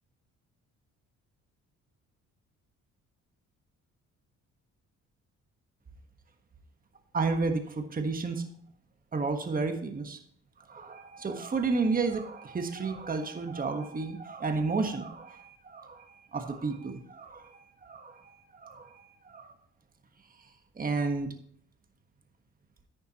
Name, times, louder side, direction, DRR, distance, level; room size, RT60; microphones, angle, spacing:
voice 1, 7.1-8.4 9.1-10.2 10.7-18.2 18.5-19.5 20.8-21.3, right 4 dB, 30° right, 6 dB, 1.4 m, -32 dB
10.5 x 9.2 x 3.0 m, 0.65 s
cardioid pair, 90°, 30 cm